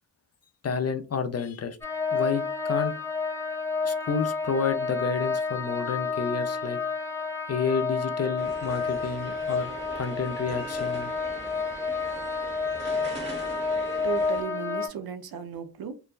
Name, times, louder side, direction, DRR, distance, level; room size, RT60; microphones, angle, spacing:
voice 1, 0.6-1.8 2.1-2.9 3.8-6.8 7.5-11.1, left 5 dB, 40° left, 0.5 m, -30 dB
sound 1, 1.8-14.9, left 4 dB, 5° left, 0.8 m, -30 dB
sound 2, 8.4-14.4, right 2 dB, 25° right, 1.1 m, -42 dB
voice 2, 14.0-15.9, right 7 dB, 60° right, 0.6 m, -35 dB
3.1 x 2.2 x 2.3 m
cardioid pair, 45°, 41 cm